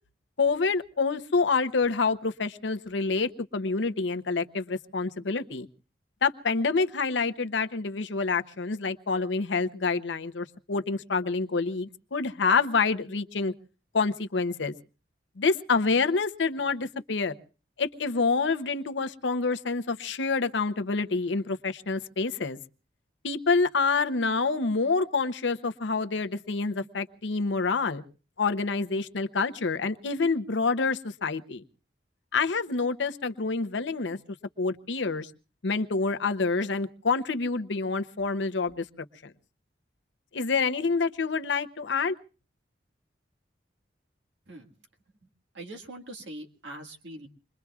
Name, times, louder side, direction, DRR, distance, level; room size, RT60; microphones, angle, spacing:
voice 1, 0.4-5.7 6.2-13.5 13.9-14.7 15.4-17.3 17.8-22.6 23.2-28.0 28.4-31.6 32.3-34.2 34.6-35.3 35.6-39.3 40.3-42.1, left 4 dB, 80° left, 9 dB, 0.7 m, -27 dB
voice 2, 45.5-47.3, right 1 dB, 75° right, 4 dB, 1.8 m, -42 dB
27.0 x 22.0 x 2.4 m, 0.36 s
head